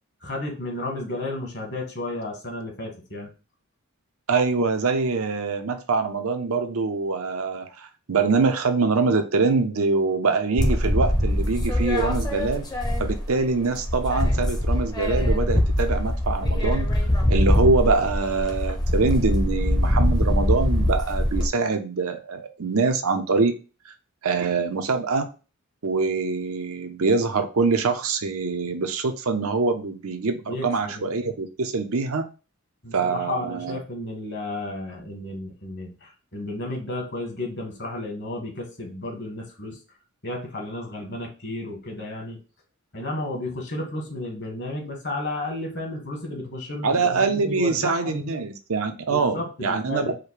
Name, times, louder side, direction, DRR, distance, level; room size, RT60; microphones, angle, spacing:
voice 1, 0.2-3.3 30.4-31.1 32.8-39.8 40.2-42.4 42.9-48.4 49.1-50.1, left 2 dB, 50° left, 1 dB, 1.7 m, -33 dB
voice 2, 4.3-12.6 13.0-16.9 17.3-23.5 23.9-24.0 24.2-25.3 25.8-32.3 32.9-33.8 46.8-50.1, right 4 dB, 65° right, 7 dB, 0.7 m, -24 dB
sound 1, 10.6-13.4 13.7-21.5, left 1 dB, 20° left, 0.8 m, -23 dB
4.9 x 2.2 x 4.7 m, 0.33 s
head